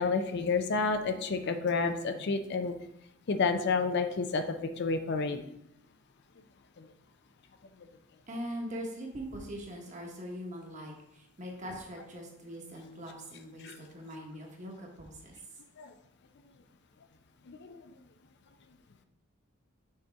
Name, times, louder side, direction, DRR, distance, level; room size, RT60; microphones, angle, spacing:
voice 1, 0.0-2.7 3.3-5.4 6.8-6.9 13.6-13.8 15.8-15.9 17.5-17.9, left 4 dB, 50° left, 8 dB, 0.4 m, -30 dB
voice 2, 8.3-15.3, equal, 35° right, 0 dB, 1.2 m, -42 dB
6.4 x 4.3 x 3.5 m, 0.79 s
head